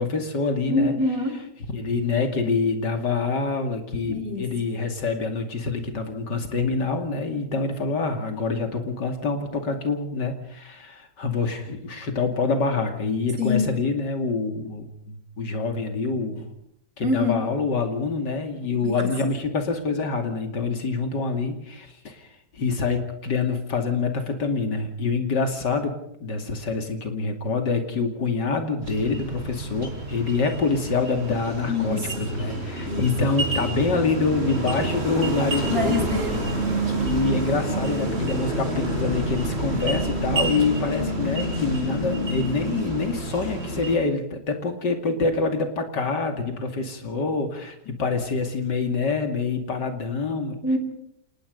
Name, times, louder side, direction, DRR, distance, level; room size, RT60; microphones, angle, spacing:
voice 1, 0.0-0.9 1.7-16.5 17.0-22.3 22.5-36.1 37.0-50.6, left 4 dB, 80° left, 6 dB, 3.1 m, -26 dB
voice 2, 0.7-1.4 4.1-4.4 13.4-13.7 17.0-17.4 18.8-19.1 31.7-32.3 32.9-33.1 35.6-36.5 50.6-50.8, left 2 dB, 55° right, 3 dB, 5.3 m, -25 dB
sound 1, 28.8-44.0, right 2 dB, 35° right, 4.1 m, -28 dB
27.5 x 19.5 x 5.3 m, 0.73 s
omnidirectional pair, 1.8 m